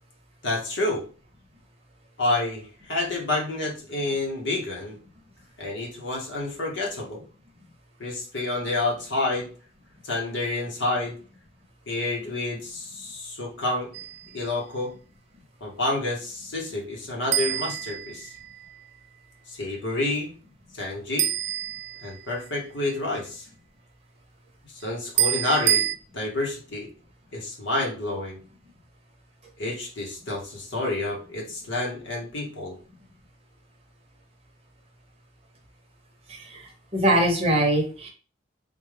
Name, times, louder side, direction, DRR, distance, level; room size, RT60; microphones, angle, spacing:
voice 1, 0.4-1.0 2.2-5.0 5.6-7.2 8.0-9.5 10.0-11.2 11.9-13.9 14.3-14.9 15.6-18.3 19.5-20.3 20.7-21.3 22.0-23.5 24.8-25.9 26.1-26.9 27.3-28.4 29.6-32.8, left 2 dB, 70° left, -1 dB, 1.0 m, -29 dB
sound 1, 13.9-14.4 17.3-18.7 21.2-22.5 25.2-26.0, right 11 dB, 65° right, 0.3 m, -26 dB
voice 2, 36.3-38.1, right 1 dB, 30° right, 1 dB, 0.8 m, -23 dB
3.6 x 2.3 x 3.2 m, 0.38 s
head